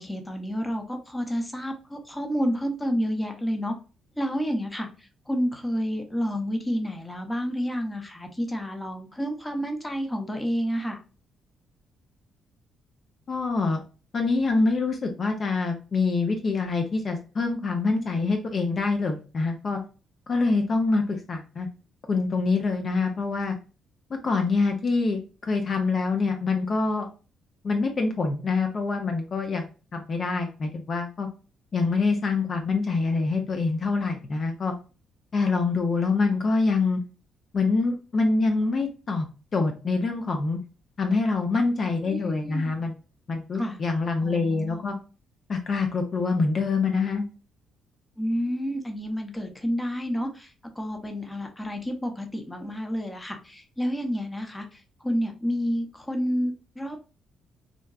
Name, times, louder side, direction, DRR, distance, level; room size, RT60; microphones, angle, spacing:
voice 1, 0.0-3.7 4.2-11.0 42.1-42.7 43.5-43.8 44.2-44.9 48.2-57.1, equal, 10° left, 4 dB, 0.7 m, -30 dB
voice 2, 13.3-13.8 14.1-19.8 20.3-21.7 22.1-23.6 24.2-27.1 27.6-31.3 31.7-34.7 35.3-37.0 37.5-39.3 39.5-40.6 41.0-43.0 43.3-45.0 45.5-47.2, left 3 dB, 45° left, 4 dB, 0.5 m, -25 dB
3.7 x 2.2 x 2.3 m, 0.34 s
cardioid pair, 90°, 0 cm